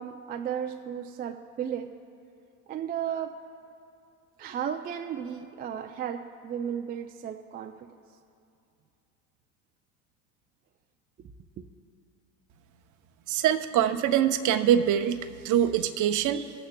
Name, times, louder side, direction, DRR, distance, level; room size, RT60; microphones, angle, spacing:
voice 1, 0.0-2.0 2.7-3.4 4.4-7.9 11.6-11.7, right 8 dB, 25° right, 0.3 m, -34 dB
voice 2, 13.3-15.2 15.4-16.5, right 10 dB, 45° right, 0.7 m, -24 dB
25.0 x 8.5 x 2.2 m
hypercardioid pair, 90°, 43 cm